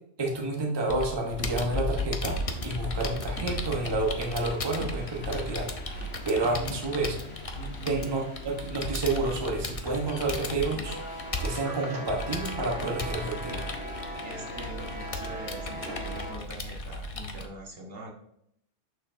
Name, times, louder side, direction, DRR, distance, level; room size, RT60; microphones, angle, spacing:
voice 1, 0.2-2.4 2.6-7.2 7.9-13.7, right 2 dB, 25° right, 0 dB, 0.9 m, -30 dB
Computer keyboard, 0.9-17.5, left 1 dB, 35° left, 0.6 m, -35 dB
sound 1, 2.2-16.3, equal, 75° left, 1.9 m, -42 dB
voice 2, 6.4-6.7 7.5-8.1 14.2-18.1, right 1 dB, 55° right, 0 dB, 1.3 m, -42 dB
Sliding door, 11.2-16.7, right 2 dB, 75° right, 1.5 m, -45 dB
6.8 x 6.5 x 2.6 m, 0.74 s
omnidirectional pair, 1.2 m